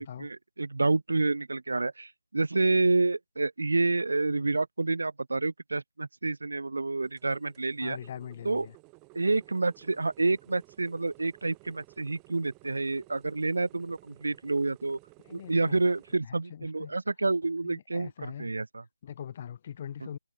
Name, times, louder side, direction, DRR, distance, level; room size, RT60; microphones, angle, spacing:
voice 1, 0.0-8.0 8.4-8.7 9.1-15.0 15.3-18.8, right 3 dB, 65° right, 3.5 m, -28 dB
sound 1, 7.0-16.2, right 34 dB, 10° right, 4.6 m, -56 dB
voice 2, 7.8-8.7 15.3-15.8 16.3-16.9 17.6-18.5 19.0-20.2, left 9 dB, 20° left, 2.2 m, -42 dB
figure-of-eight pair, 170°, 0 cm